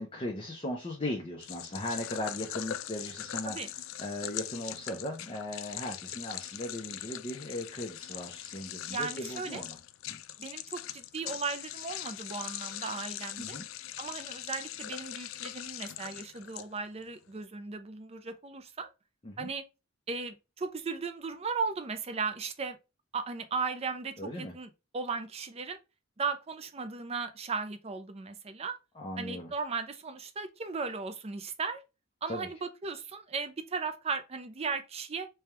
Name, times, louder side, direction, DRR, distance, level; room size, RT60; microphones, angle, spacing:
voice 1, 0.0-3.6 4.0-9.8 10.1-10.2 13.4-13.7 19.2-19.5 24.2-24.5 29.0-29.5 32.3-32.5, left 1 dB, 25° left, 0.6 m, -38 dB
sound 1, 1.4-17.0, left 12 dB, 65° left, 0.3 m, -41 dB
voice 2, 8.9-9.6 10.4-13.6 14.0-18.9 19.4-19.6 20.1-22.8 23.1-24.7 24.9-25.8 26.2-28.7 29.2-31.8 32.2-35.3, right 4 dB, 30° right, 0.4 m, -36 dB
3.4 x 2.3 x 4.2 m
head